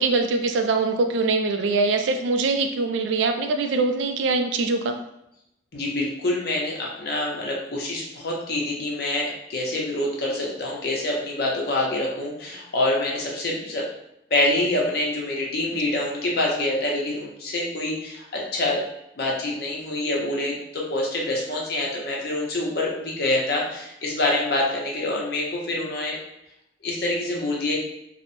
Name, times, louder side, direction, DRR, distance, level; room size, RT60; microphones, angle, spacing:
voice 1, 0.0-5.0, right 3 dB, 80° right, 5 dB, 0.3 m, -23 dB
voice 2, 5.7-13.9 14.3-18.8 19.2-26.2 26.8-27.8, left 1 dB, 55° left, -2 dB, 0.6 m, -26 dB
2.9 x 2.0 x 2.6 m, 0.83 s
head